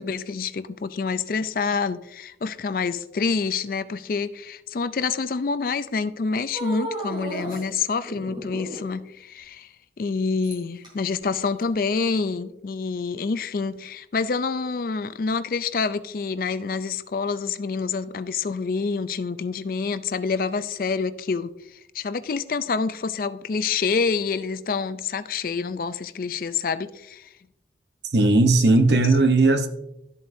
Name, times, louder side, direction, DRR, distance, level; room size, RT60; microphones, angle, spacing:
voice 1, 0.0-9.7 10.0-27.3, left 5 dB, 50° left, 0.4 m, -27 dB
sound 1, 6.5-7.6 8.0-9.0 10.4-10.9 11.6-11.7, right 2 dB, 25° right, 3.1 m, -33 dB
voice 2, 28.1-29.7, right 2 dB, 70° right, 0.9 m, -17 dB
12.0 x 7.6 x 2.6 m
head